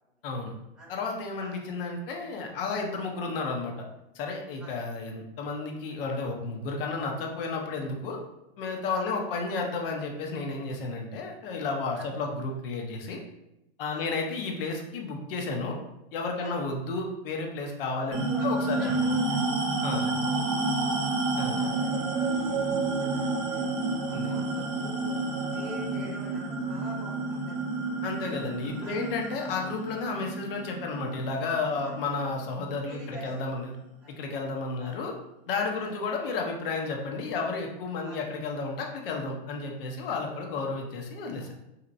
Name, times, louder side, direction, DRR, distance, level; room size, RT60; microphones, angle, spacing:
voice 1, 0.2-0.5 0.9-3.7 4.1-8.2 8.6-13.2 13.8-15.8 16.1-18.9 19.8-20.1 21.4-21.6 24.1-24.4 28.0-33.8 34.1-35.2 35.5-41.5, left 3 dB, 60° left, 1 dB, 0.8 m, -32 dB
voice 2, 18.0-19.4 19.8-20.9 21.3-25.1 25.5-27.6 28.8-29.0 31.8-31.9 32.9-33.4 34.0-34.1 34.8-35.0 35.7-35.9 38.0-38.2 41.4-41.5, equal, ahead, -8 dB, 0.8 m, -46 dB
sound 1, 18.1-32.9, right 3 dB, 35° right, 0.7 m, -30 dB
2.8 x 2.8 x 2.5 m, 0.90 s
hypercardioid pair, 120°, 31 cm